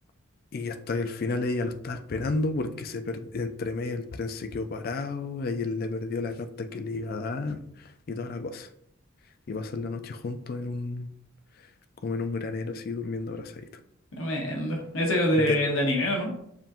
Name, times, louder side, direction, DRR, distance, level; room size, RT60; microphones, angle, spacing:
voice 1, 0.5-8.7 9.5-11.1 11.6-11.7 12.0-13.8 15.3-15.6, left 3 dB, 50° left, 8 dB, 0.4 m, -32 dB
voice 2, 14.1-16.3, left 1 dB, 90° left, 0 dB, 1.2 m, -25 dB
7.2 x 2.5 x 2.8 m, 0.74 s
head